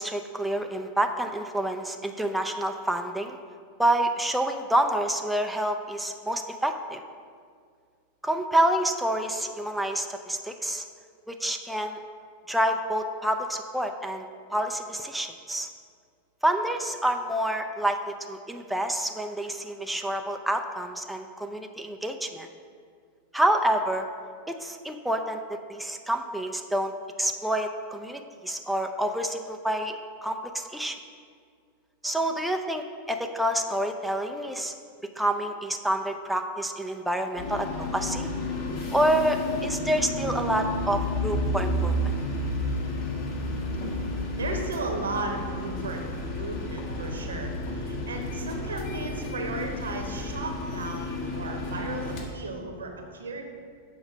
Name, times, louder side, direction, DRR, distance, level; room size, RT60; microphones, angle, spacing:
voice 1, 0.0-3.4 3.8-7.0 8.2-10.8 11.3-12.0 12.5-15.7 16.4-22.5 23.3-24.0 24.5-25.4 25.7-26.9 27.2-29.9 30.2-31.0 32.0-34.7 35.2-38.3 38.9-42.1, right 1 dB, 5° right, 4 dB, 0.4 m, -28 dB
sound 1, 37.4-52.2, left 1 dB, 50° left, 1.6 m, -31 dB
voice 2, 44.4-46.1 46.4-53.4, right 2 dB, 70° right, 3 dB, 1.1 m, -35 dB
7.1 x 5.3 x 6.3 m, 2.2 s
figure-of-eight pair, 90°, 0 cm